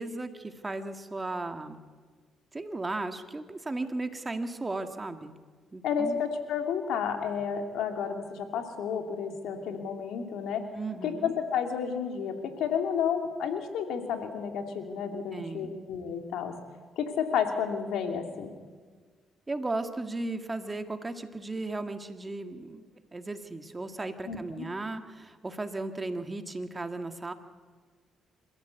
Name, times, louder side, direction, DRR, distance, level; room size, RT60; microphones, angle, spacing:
voice 1, 0.0-1.8 2.5-5.3 5.7-6.2 10.7-11.3 15.3-15.8 19.5-22.9 23.1-27.3, right 2 dB, 25° right, 7 dB, 2.0 m, -35 dB
voice 2, 5.8-10.6 11.0-16.5 17.0-18.5 24.3-24.7, left 7 dB, 80° left, 5 dB, 2.6 m, -31 dB
26.5 x 14.0 x 8.2 m, 1.5 s
supercardioid pair, 70°, 0 cm